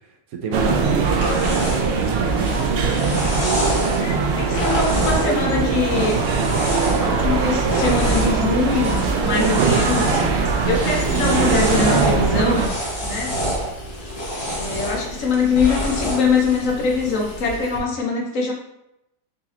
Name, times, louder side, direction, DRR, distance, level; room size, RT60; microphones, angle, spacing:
voice 1, 0.3-3.2 9.6-10.0, right 5 dB, 70° right, 4 dB, 1.0 m, -29 dB
sound 1, 0.5-12.7, right 4 dB, 90° right, 0.5 m, -21 dB
sound 2, 0.6-17.6, equal, 25° left, 0.9 m, -28 dB
voice 2, 4.0-6.2 7.0-10.2 10.5-12.7 13.0-13.4 14.6-18.5, left 4 dB, 60° left, 0 dB, 1.1 m, -23 dB
Water tap faucet / Sink (filling or washing), 7.2-17.8, left 1 dB, 80° left, 1.4 m, -39 dB
4.1 x 2.9 x 3.7 m, 0.85 s
omnidirectional pair, 1.7 m